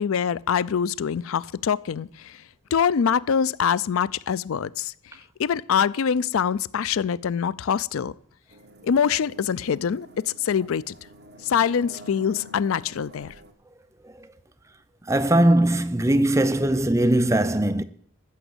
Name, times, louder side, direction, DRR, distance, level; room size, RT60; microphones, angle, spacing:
voice 1, 0.0-2.4 2.7-4.9 5.4-8.1 8.8-10.9 11.4-13.3, left 7 dB, 80° left, 0.4 m, -24 dB
sound 1, 8.5-13.5, equal, 50° right, 1.6 m, -47 dB
voice 2, 15.1-17.8, right 1 dB, 15° right, 0.5 m, -20 dB
14.0 x 7.1 x 7.9 m
head